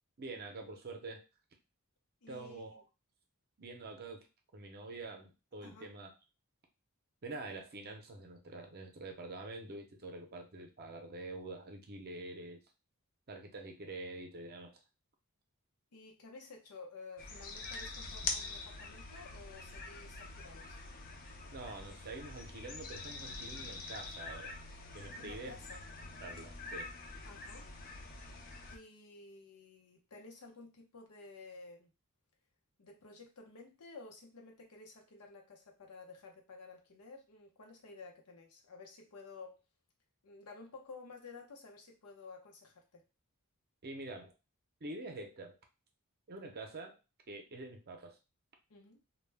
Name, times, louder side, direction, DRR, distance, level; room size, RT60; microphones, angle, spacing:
voice 1, 0.2-1.3 2.3-2.8 3.6-4.3 4.5-6.1 7.2-12.6 13.3-14.7 21.5-24.5 24.9-25.5 26.2-26.9 43.8-44.3 44.8-45.6 46.3-47.0 47.3-48.2, right 2 dB, 45° right, 3 dB, 0.5 m, -46 dB
voice 2, 2.2-2.8 5.6-5.9 15.9-20.8 25.1-25.8 27.2-27.7 28.7-31.9 32.8-39.6 40.2-43.0 48.7-49.0, left 3 dB, 85° left, 1 dB, 0.7 m, -53 dB
sound 1, 17.2-28.8, left 3 dB, 40° left, 0.5 m, -45 dB
2.2 x 2.1 x 3.3 m, 0.28 s
head